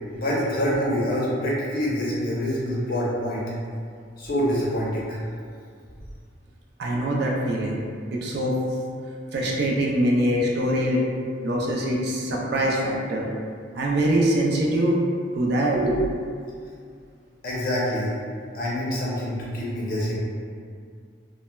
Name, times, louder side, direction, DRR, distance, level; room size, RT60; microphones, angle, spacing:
voice 1, 0.1-3.4 4.2-5.2 17.4-18.1 18.5-20.2, equal, 50° left, -6 dB, 0.6 m, -26 dB
voice 2, 6.8-7.8 8.1-8.5 9.3-11.0 11.4-13.2 13.7-15.0 15.3-16.0, right 1 dB, 60° right, -3 dB, 0.4 m, -23 dB
3.1 x 2.0 x 2.2 m, 2.2 s
head